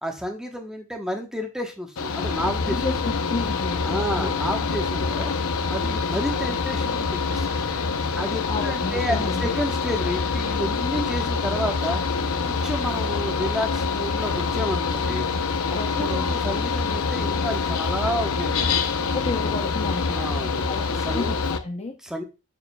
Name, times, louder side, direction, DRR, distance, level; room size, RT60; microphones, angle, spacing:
voice 1, 0.0-2.8 3.8-5.3 5.7-7.6 8.2-12.0 12.4-15.3 16.0-18.9 20.1-21.3 22.0-22.2, equal, 5° right, 2 dB, 1.1 m, -30 dB
Mechanical fan, 2.0-21.6, left 4 dB, 85° left, 0.7 m, -25 dB
voice 2, 2.7-4.4 8.5-9.5 15.7-16.3 19.1-20.3 20.7-22.0, left 3 dB, 30° left, 4 dB, 0.7 m, -31 dB
6.7 x 6.6 x 2.3 m, 0.29 s
head